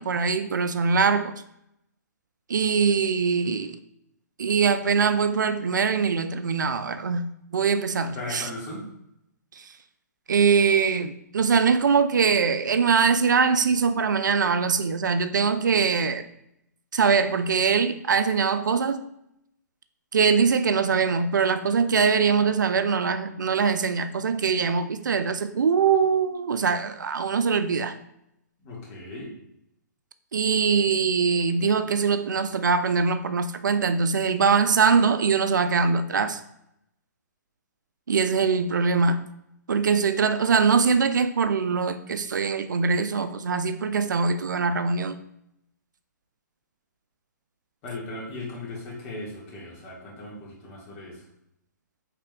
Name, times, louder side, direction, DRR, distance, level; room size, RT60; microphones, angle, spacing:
voice 1, 0.0-1.3 2.5-3.8 4.4-8.5 9.6-9.7 10.3-16.2 16.9-19.1 20.1-28.0 30.3-36.4 38.1-39.3 39.7-45.2, right 5 dB, 85° right, 11 dB, 0.4 m, -22 dB
voice 2, 8.1-8.8 28.6-29.3 47.8-51.2, left 2 dB, 30° left, -4 dB, 1.5 m, -37 dB
4.9 x 3.3 x 2.2 m, 0.79 s
hypercardioid pair, 140°, 10 cm